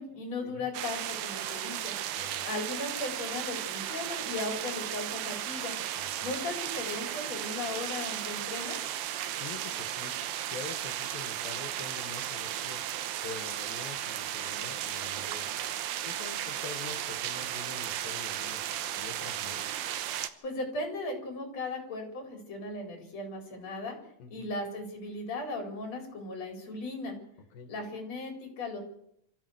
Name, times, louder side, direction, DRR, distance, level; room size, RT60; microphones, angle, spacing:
voice 1, 0.0-1.9 2.4-5.7 6.2-8.8 20.4-24.0 24.3-27.1 27.7-28.8, left 2 dB, 50° left, 3 dB, 5.5 m, -37 dB
sound 1, 0.7-20.3, right 11 dB, 90° right, 2.9 m, -35 dB
voice 2, 6.0-6.3 9.4-10.1 10.4-12.8 13.2-15.5 16.0-18.7 19.0-19.6 24.2-24.5 27.5-27.7, left 5 dB, 85° left, 7 dB, 3.4 m, -45 dB
25.0 x 14.5 x 8.1 m, 0.75 s
omnidirectional pair, 4.0 m